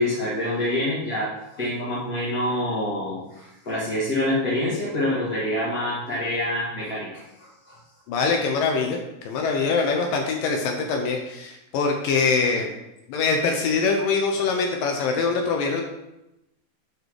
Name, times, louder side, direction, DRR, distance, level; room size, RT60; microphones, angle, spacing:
voice 1, 0.0-7.8, left 1 dB, 35° left, -9 dB, 1.7 m, -26 dB
voice 2, 8.1-9.0 9.3-12.8 13.1-15.8, left 4 dB, 75° left, 2 dB, 2.2 m, -23 dB
10.5 x 5.4 x 4.7 m, 0.91 s
omnidirectional pair, 4.7 m